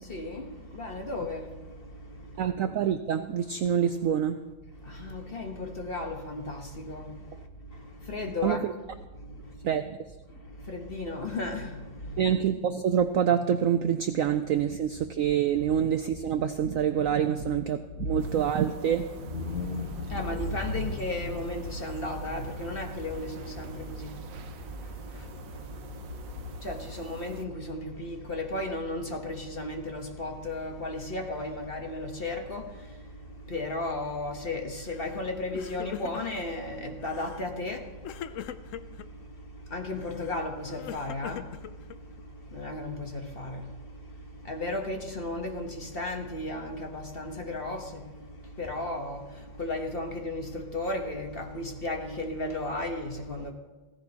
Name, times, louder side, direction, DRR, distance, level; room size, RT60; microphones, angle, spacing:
voice 1, 0.0-2.5 4.7-8.6 9.1-9.7 10.3-12.3 18.0-18.2 19.2-53.5, left 2 dB, 35° left, 1.1 m, -35 dB
voice 2, 2.4-4.4 8.4-8.7 9.6-10.1 12.2-19.0, right 9 dB, 75° right, 0.7 m, -26 dB
sound 1, 18.2-27.5, right 3 dB, 90° right, 1.5 m, -44 dB
Crying sobbing, 34.9-35.2 35.5-36.5 37.0-37.5 38.0-39.1 40.0-42.2, left 10 dB, 80° left, 0.7 m, -42 dB
16.0 x 15.0 x 2.9 m
omnidirectional pair, 1.9 m